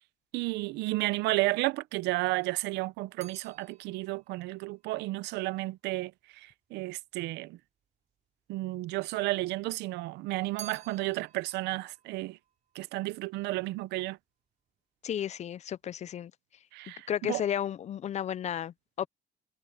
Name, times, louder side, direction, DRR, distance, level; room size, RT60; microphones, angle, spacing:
voice 1, 0.3-6.1 6.4-7.6 8.5-12.4 12.7-14.2 16.7-17.4, right 20 dB, 90° right, 0.7 m, -32 dB
sound 1, 2.2-6.6 7.4-8.2 8.5-9.7 10.0-13.5 13.8-14.3, right 9 dB, 45° right, 3.2 m, -53 dB
voice 2, 15.0-16.3 17.1-19.1, left 10 dB, 40° left, 0.5 m, -33 dB
cardioid pair, 110°, 17 cm